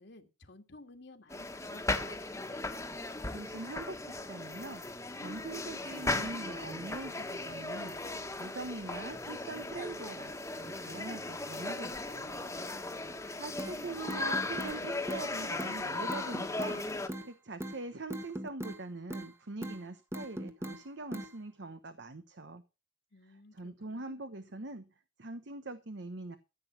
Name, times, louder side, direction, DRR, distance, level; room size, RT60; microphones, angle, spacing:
voice 1, 0.0-2.2 13.5-14.0 23.1-24.2, left 2 dB, 65° left, 5 dB, 2.0 m, -55 dB
sound 1, 1.3-17.1, left 2 dB, 15° left, 1.5 m, -37 dB
voice 2, 3.3-4.8 5.2-12.4 13.4-22.6 23.3-24.9 25.2-26.4, right 2 dB, 65° right, 10 dB, 1.0 m, -43 dB
sound 2, 13.6-13.7 14.1-14.7 15.1-15.2 15.6-15.7 16.1-16.8 17.1-17.3 17.6-17.8 18.1-18.8 19.1-19.3 19.6-19.8 20.1-20.8 21.1-21.3, right 1 dB, 15° right, 1.4 m, -39 dB
14.5 x 8.0 x 5.9 m, 0.31 s
head